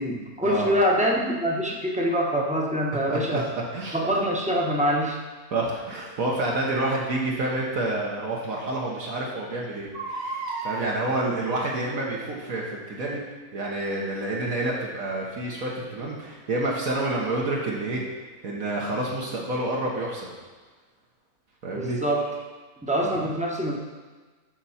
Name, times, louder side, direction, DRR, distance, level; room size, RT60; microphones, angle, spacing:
voice 1, 0.0-3.5 3.9-5.2 21.7-22.3 22.8-23.8, equal, 5° right, -1 dB, 0.8 m, -25 dB
voice 2, 3.1-3.4 3.7-4.0 5.5-13.2 13.5-18.0 18.4-20.3 21.6-22.0 23.0-23.2, right 2 dB, 65° right, -3 dB, 1.6 m, -28 dB
Crying sobbing, 3.3-3.5 5.9-6.1 7.7-7.8 8.3-8.4 8.7-8.8 9.8-10.9 11.8-12.2 12.7-12.8, right 3 dB, 85° right, 2.5 m, -34 dB
12.5 x 4.6 x 4.2 m, 1.3 s
omnidirectional pair, 1.6 m